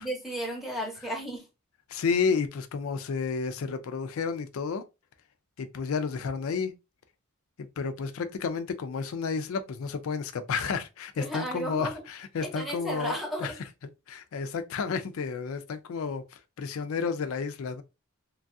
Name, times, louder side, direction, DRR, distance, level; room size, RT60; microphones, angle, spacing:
voice 1, 0.0-1.5 11.2-12.0 12.4-13.5, equal, ahead, 0.8 m, -34 dB
voice 2, 1.9-4.8 5.6-6.7 7.6-13.7 14.1-17.8, left 5 dB, 70° left, 0.4 m, -31 dB
3.1 x 2.3 x 2.6 m
head